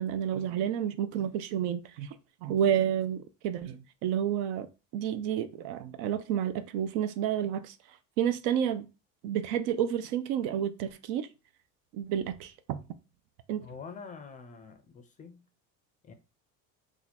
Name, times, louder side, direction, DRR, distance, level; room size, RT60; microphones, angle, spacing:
voice 1, 0.0-4.7 4.9-7.8 8.2-8.9 9.2-11.3 11.9-12.8 13.5-13.7, right 9 dB, 70° right, 0.5 m, -30 dB
voice 2, 13.6-15.5 16.0-16.1, left 5 dB, 25° left, 0.4 m, -46 dB
2.8 x 2.4 x 4.1 m
cardioid pair, 130°, 34 cm